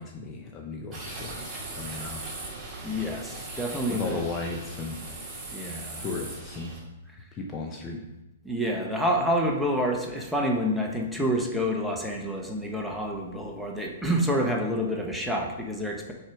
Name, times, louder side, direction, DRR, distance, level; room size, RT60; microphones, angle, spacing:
voice 1, 0.0-1.5 1.8-2.3 3.9-5.0 6.0-6.7 7.3-8.0, left 3 dB, 25° left, 1 dB, 0.8 m, -35 dB
sound 1, 0.9-6.8, right 2 dB, 15° right, 2.4 m, -39 dB
voice 2, 2.8-4.2 5.5-6.1 8.4-16.1, equal, ahead, -1 dB, 1.1 m, -28 dB
6.3 x 4.9 x 4.7 m, 0.97 s
hypercardioid pair, 130°, 0 cm